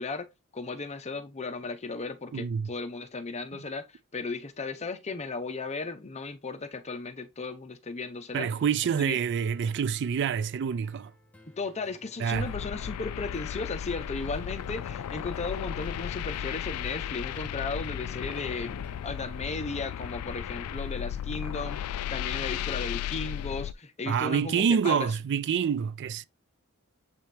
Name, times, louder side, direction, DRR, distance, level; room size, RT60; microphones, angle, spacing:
voice 1, 0.0-8.5 9.0-9.2 11.5-25.1, left 3 dB, 30° left, 0.7 m, -36 dB
voice 2, 2.3-2.7 8.3-11.1 12.2-12.5 24.1-26.3, right 7 dB, 55° right, 0.3 m, -27 dB
sound 1, 8.3-19.3, left 1 dB, 5° left, 0.9 m, -57 dB
sound 2, 12.3-23.7, left 10 dB, 85° left, 0.3 m, -35 dB
7.6 x 4.2 x 3.3 m
head